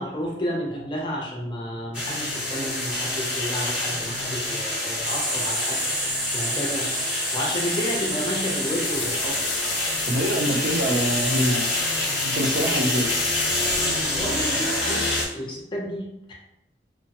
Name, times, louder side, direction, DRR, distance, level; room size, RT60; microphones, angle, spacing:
voice 1, 0.0-5.8 6.3-6.9 7.3-9.4 12.7-12.9 14.1-16.3, equal, 25° left, -1 dB, 0.6 m, -31 dB
sound 1, 1.9-15.3, left 1 dB, 10° right, 0.8 m, -27 dB
sound 2, 5.0-11.5, right 1 dB, 45° right, 0.8 m, -31 dB
sound 3, 8.8-14.3, left 8 dB, 85° left, 0.3 m, -34 dB
voice 2, 10.1-11.7 12.2-13.1, equal, 85° right, 1 dB, 0.5 m, -24 dB
3.0 x 2.1 x 2.8 m, 0.88 s
head